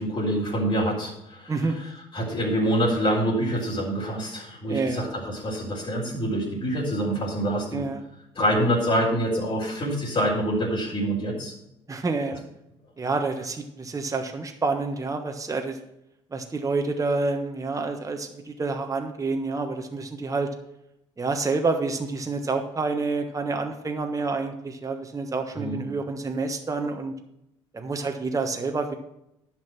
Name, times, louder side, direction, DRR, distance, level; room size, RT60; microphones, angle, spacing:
voice 1, 0.0-1.6 2.1-7.8 8.4-11.5 25.6-25.8, equal, 40° left, -4 dB, 3.9 m, -26 dB
voice 2, 4.7-5.1 7.7-8.0 11.9-12.4 13.0-15.8 16.3-20.5 21.2-27.1 27.7-28.9, right 3 dB, 25° right, 4 dB, 1.3 m, -28 dB
10.5 x 6.2 x 6.1 m, 0.83 s
hypercardioid pair, 55°, 14 cm